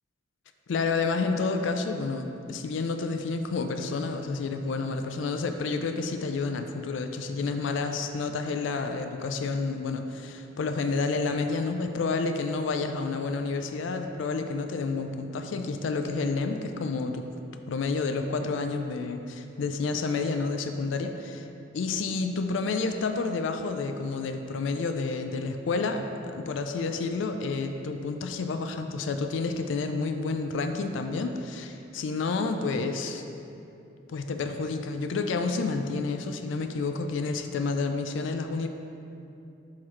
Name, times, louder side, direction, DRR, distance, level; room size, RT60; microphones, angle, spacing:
voice 1, 0.7-17.3 17.7-21.5 21.7-26.1 26.3-33.2 34.1-38.7, left 4 dB, 75° left, 6 dB, 0.4 m, -30 dB
10.5 x 3.9 x 3.2 m, 2.7 s
head